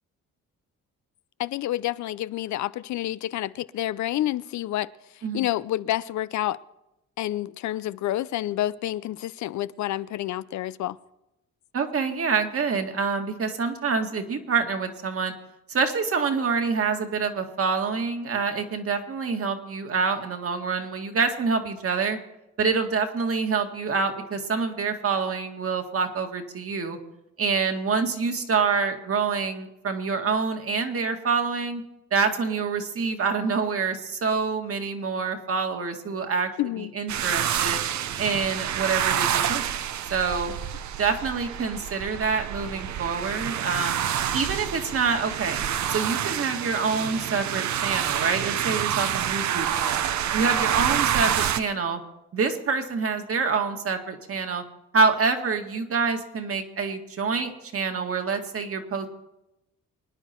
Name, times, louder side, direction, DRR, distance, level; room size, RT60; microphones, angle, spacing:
voice 1, 1.4-4.9 5.3-6.6 7.2-11.0 36.6-36.9, left 14 dB, 70° left, 0.5 m, -28 dB
voice 2, 11.7-15.3 15.7-22.2 22.6-27.0 27.4-31.8 32.1-36.5 36.8-37.8 38.2-40.5 41.0-44.0 44.3-45.6 45.9-49.9 50.3-52.0 52.3-54.6 54.9-59.1, right 5 dB, 50° right, 2.0 m, -26 dB
sound 1, 37.1-51.6, right 10 dB, 65° right, 0.9 m, -27 dB
24.5 x 9.9 x 4.5 m
cardioid pair, 90°, 30 cm